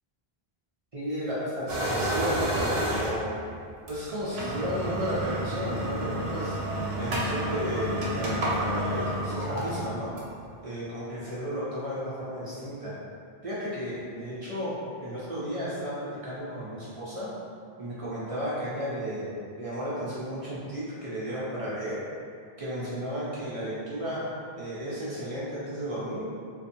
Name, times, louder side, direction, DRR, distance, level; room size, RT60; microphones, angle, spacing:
voice 1, 0.9-3.3 3.9-6.6 7.0-10.1 10.6-13.0 13.4-17.3 17.8-22.0 22.6-24.3 24.6-26.3, equal, 45° right, -9 dB, 0.5 m, -33 dB
sound 1, 1.7-3.4 3.9-4.0 4.3-10.4, right 1 dB, 85° right, 0.8 m, -30 dB
2.7 x 2.2 x 2.5 m, 2.2 s
omnidirectional pair, 1.0 m